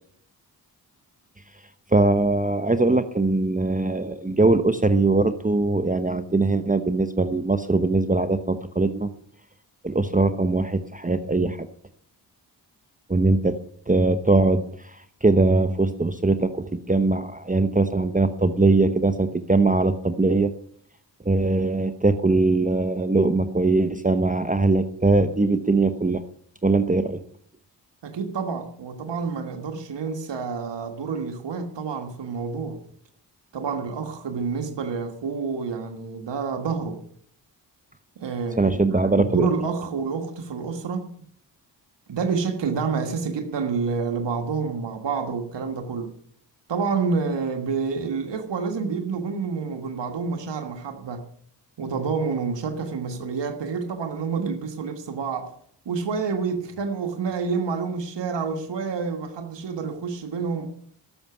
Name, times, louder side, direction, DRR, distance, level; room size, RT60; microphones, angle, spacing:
voice 1, 1.9-9.1 9.8-11.7 13.1-13.6 13.9-20.5 21.2-26.2 26.6-27.2 38.6-39.5, right 3 dB, 20° right, 1.0 m, -21 dB
voice 2, 28.0-32.8 33.5-37.0 38.2-41.1 42.1-46.1 46.7-51.2 51.8-55.5 55.8-60.7, right 5 dB, 70° right, 1.6 m, -28 dB
13.5 x 6.9 x 9.6 m
cardioid pair, 50°, 44 cm